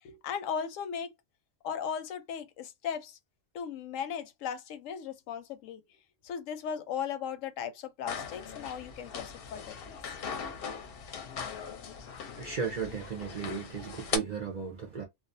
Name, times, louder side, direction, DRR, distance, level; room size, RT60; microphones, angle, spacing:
voice 1, 0.0-1.1 1.6-3.2 3.5-5.8 6.2-10.0, left 7 dB, 85° left, 1.0 m, -37 dB
sound 1, 8.1-14.2, left 6 dB, 60° left, 0.7 m, -39 dB
voice 2, 12.4-15.1, right 6 dB, 55° right, 0.5 m, -35 dB
2.3 x 2.3 x 2.5 m
omnidirectional pair, 1.3 m